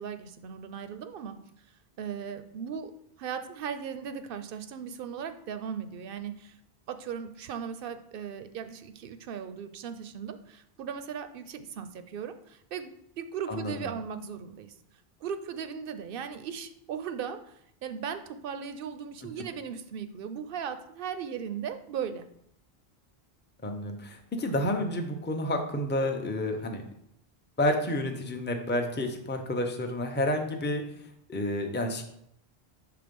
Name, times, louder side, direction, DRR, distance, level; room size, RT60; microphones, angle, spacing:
voice 1, 0.0-1.4 2.0-6.6 6.9-14.8 15.2-22.3, right 7 dB, 65° right, 10 dB, 0.7 m, -37 dB
voice 2, 23.6-26.8 27.6-30.8 31.3-32.0, left 1 dB, 15° left, 4 dB, 0.6 m, -30 dB
6.8 x 3.5 x 5.2 m, 0.73 s
omnidirectional pair, 1.0 m